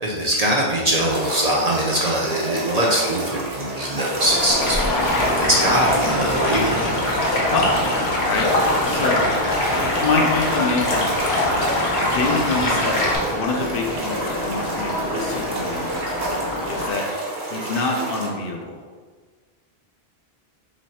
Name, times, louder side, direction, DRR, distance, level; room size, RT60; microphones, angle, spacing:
voice 1, 0.0-4.9 5.4-7.0, right 1 dB, 50° right, -3 dB, 0.5 m, -22 dB
sound 1, 1.1-18.3, right 1 dB, 75° right, 1.2 m, -30 dB
sound 2, 4.2-16.9, left 1 dB, 30° left, 0.4 m, -28 dB
Stream, 4.6-13.2, left 1 dB, 90° left, 1.1 m, -23 dB
voice 2, 7.5-7.9 8.3-8.5 8.9-9.3 9.7-11.2 12.0-15.9 16.7-18.8, left 3 dB, 65° left, 1 dB, 0.8 m, -26 dB
3.1 x 3.1 x 4.2 m, 1.5 s
omnidirectional pair, 1.1 m